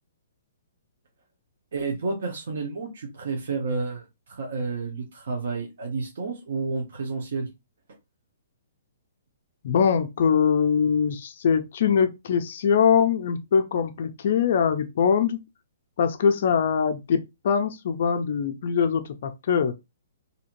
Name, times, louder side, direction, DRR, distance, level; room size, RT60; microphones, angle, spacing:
voice 1, 1.7-7.5, right 4 dB, 55° right, 0.8 m, -30 dB
voice 2, 9.6-15.4 16.0-19.7, left 7 dB, 40° left, 0.3 m, -22 dB
3.0 x 2.7 x 2.5 m
hypercardioid pair, 180°, 0 cm